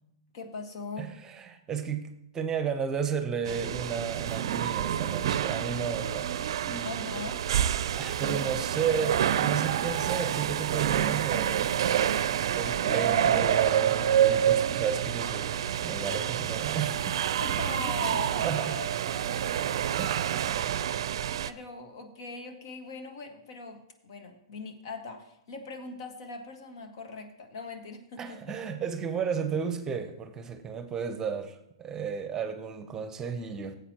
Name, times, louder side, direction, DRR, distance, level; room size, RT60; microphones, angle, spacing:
voice 1, 0.3-1.1 6.8-7.4 17.4-18.9 19.2-20.0 21.4-28.6, left 3 dB, 60° left, 5 dB, 1.6 m, -41 dB
voice 2, 1.0-6.3 6.7-7.0 8.0-12.1 12.5-17.2 18.4-18.8 28.2-33.8, right 6 dB, 20° right, 9 dB, 0.8 m, -33 dB
sound 1, 3.5-21.5, right 10 dB, 65° right, 0.4 m, -28 dB
15.5 x 8.1 x 3.0 m, 0.83 s
hypercardioid pair, 125°, 3 cm